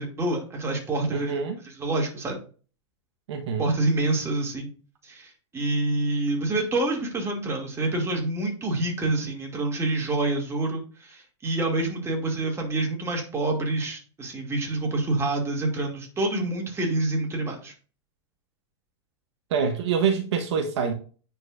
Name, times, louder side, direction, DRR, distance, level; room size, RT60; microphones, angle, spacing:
voice 1, 0.0-2.4 3.6-4.7 5.0-17.7, right 2 dB, 15° right, 2.4 m, -27 dB
voice 2, 1.1-1.6 3.3-3.7 19.5-20.9, right 6 dB, 65° right, 1.2 m, -26 dB
9.7 x 4.6 x 2.5 m
hypercardioid pair, 110°, 16 cm